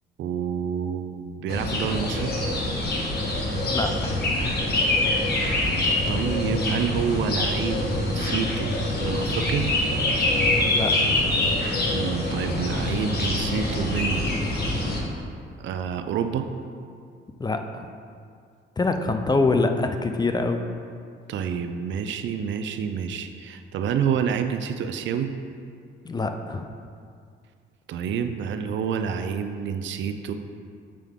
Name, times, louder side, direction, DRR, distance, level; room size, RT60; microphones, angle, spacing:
voice 1, 0.2-2.3 6.1-8.7 9.0-9.7 11.9-14.3 15.6-16.5 21.3-25.3 27.9-30.3, right 7 dB, 70° right, 8 dB, 0.5 m, -28 dB
sound 1, 1.5-15.0, left 1 dB, 55° left, 1.3 m, -25 dB
voice 2, 3.7-4.7 10.7-10.9 17.4-17.9 18.8-20.6 26.0-26.7, left 3 dB, 20° left, 6 dB, 0.4 m, -25 dB
7.5 x 4.6 x 3.6 m, 2.2 s
cardioid pair, 90°, 20 cm